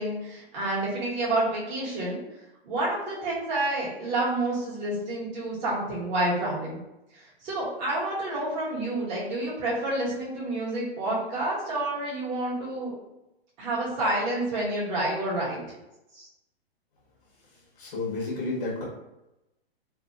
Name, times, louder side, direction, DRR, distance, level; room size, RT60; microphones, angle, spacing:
voice 1, 0.0-2.2 2.6-6.8 7.1-12.9 13.6-15.6 16.1-16.3, right 1 dB, 45° right, -7 dB, 1.5 m, -29 dB
voice 2, 17.8-18.8, left 3 dB, 60° left, -4 dB, 1.1 m, -31 dB
3.4 x 2.2 x 2.5 m, 0.93 s
hypercardioid pair, 150°, 32 cm